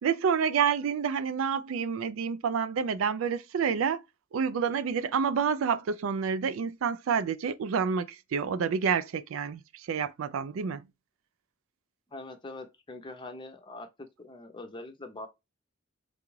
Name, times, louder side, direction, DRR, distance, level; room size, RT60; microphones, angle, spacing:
voice 1, 0.0-4.0 4.3-10.8, right 6 dB, 85° right, 0.4 m, -28 dB
voice 2, 12.1-13.9 14.2-15.3, left 2 dB, 25° left, 0.6 m, -43 dB
3.7 x 2.4 x 3.0 m
head